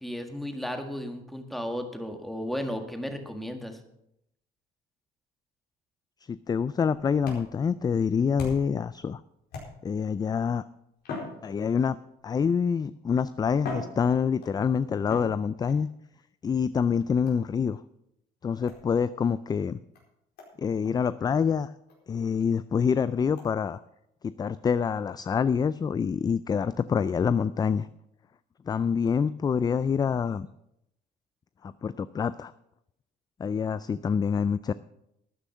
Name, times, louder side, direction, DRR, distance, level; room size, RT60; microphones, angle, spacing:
voice 1, 0.0-3.8, equal, ahead, 5 dB, 1.7 m, -34 dB
voice 2, 6.2-9.2 9.8-10.6 11.4-12.0 12.2-15.9 16.4-17.8 18.4-19.8 20.6-21.7 22.1-23.8 24.2-27.9 28.7-30.5 31.6-32.5 33.4-34.7, left 6 dB, 25° left, 15 dB, 0.3 m, -26 dB
sound 1, 7.2-8.8 9.5-10.1 11.0-12.1 12.9-13.0 13.5-14.6 15.1-15.8 17.3-17.6 18.7-18.9 19.5-19.6 19.9-20.0 20.4-20.5 20.8-21.0 21.4-21.5 21.9-22.0 22.4-22.5 23.4-23.5, left 3 dB, 70° left, 4.5 m, -40 dB
12.5 x 9.9 x 5.6 m, 0.80 s
cardioid pair, 110°, 17 cm